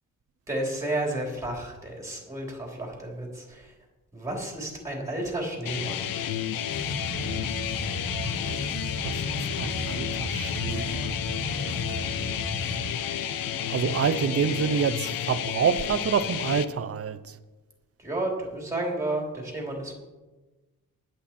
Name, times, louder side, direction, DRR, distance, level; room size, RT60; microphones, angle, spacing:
voice 1, 0.5-3.7 4.1-6.1 18.0-19.9, right 1 dB, 10° right, 0 dB, 3.1 m, -32 dB
sound 1, 5.7-16.7, left 10 dB, 85° left, 0.8 m, -31 dB
sound 2, 6.7-12.8, left 1 dB, 55° left, 3.6 m, -34 dB
voice 2, 9.0-11.2 13.7-17.2, right 7 dB, 45° right, 13 dB, 0.7 m, -27 dB
20.0 x 7.9 x 4.3 m, 1.2 s
wide cardioid pair, 150°, 34 cm